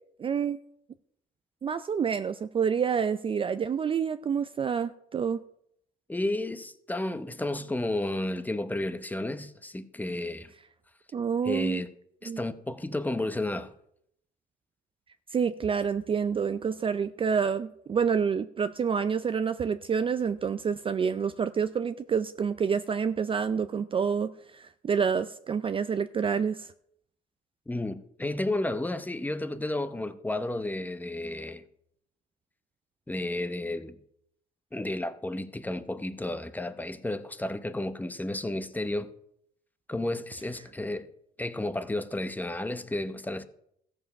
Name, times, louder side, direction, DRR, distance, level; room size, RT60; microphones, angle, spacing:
voice 1, 0.2-0.6 1.6-5.4 11.1-11.8 12.3-12.4 15.3-26.7, right 6 dB, 30° right, 0.4 m, -28 dB
voice 2, 6.1-10.5 11.4-11.9 12.2-13.7 27.7-31.6 33.1-34.0 34.7-39.1 39.9-41.1 41.4-43.4, left 1 dB, 10° left, 0.8 m, -32 dB
14.5 x 7.4 x 5.8 m
cardioid pair, 110°, 18 cm